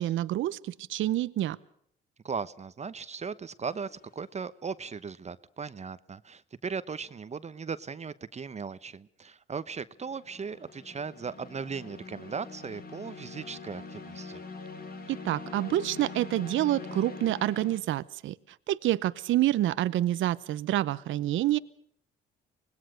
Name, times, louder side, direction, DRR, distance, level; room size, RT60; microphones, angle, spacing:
voice 1, 0.0-1.6 15.1-18.3 18.7-21.6, right 14 dB, 80° right, 16 dB, 0.8 m, -27 dB
voice 2, 2.2-14.4, right 5 dB, 35° right, 15 dB, 0.9 m, -38 dB
sound 1, 3.7-4.1 10.0-17.8, left 4 dB, 50° left, 3.4 m, -44 dB
25.5 x 20.0 x 6.5 m, 0.66 s
cardioid pair, 90°, 20 cm